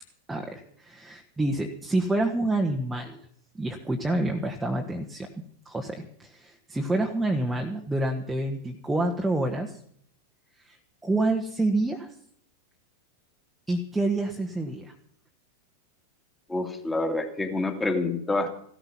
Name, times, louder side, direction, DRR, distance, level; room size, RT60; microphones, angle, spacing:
voice 1, 0.3-3.2 3.5-5.3 5.6-9.8 10.7-10.8 11.0-12.1 13.7-14.9, right 2 dB, 5° right, 1 dB, 1.5 m, -28 dB
voice 2, 16.5-18.6, left 2 dB, 10° left, 5 dB, 2.3 m, -27 dB
16.0 x 13.0 x 6.0 m, 0.65 s
figure-of-eight pair, 90°, 0 cm